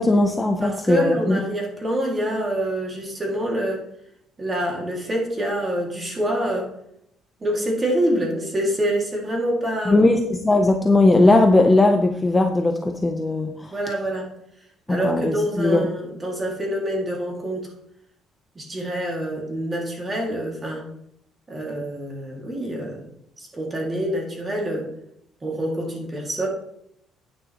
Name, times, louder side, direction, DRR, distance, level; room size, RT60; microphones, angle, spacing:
voice 1, 0.0-1.4 9.9-13.7 14.9-15.9, left 2 dB, 10° left, 3 dB, 0.6 m, -18 dB
voice 2, 0.6-3.8 4.4-6.7 7.4-10.1 13.7-14.3 14.9-17.7 18.6-20.9 21.5-23.0 23.4-24.9 25.4-26.5, right 1 dB, 20° right, -1 dB, 2.1 m, -26 dB
9.8 x 9.3 x 3.0 m, 0.74 s
cardioid pair, 165°, 0 cm